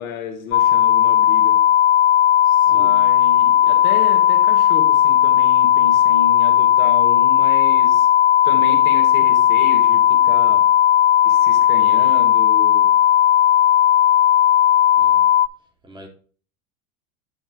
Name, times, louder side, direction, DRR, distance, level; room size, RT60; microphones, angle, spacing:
voice 1, 0.0-1.7 2.7-8.1 8.4-10.7 11.2-13.0, left 6 dB, 80° left, 2.2 m, -32 dB
sound 1, 0.5-15.5, left 11 dB, 25° left, 0.4 m, -15 dB
voice 2, 2.4-3.1 14.9-15.3 15.8-16.1, equal, 10° right, 2.5 m, -42 dB
8.9 x 6.4 x 3.2 m
hypercardioid pair, 100°, 42 cm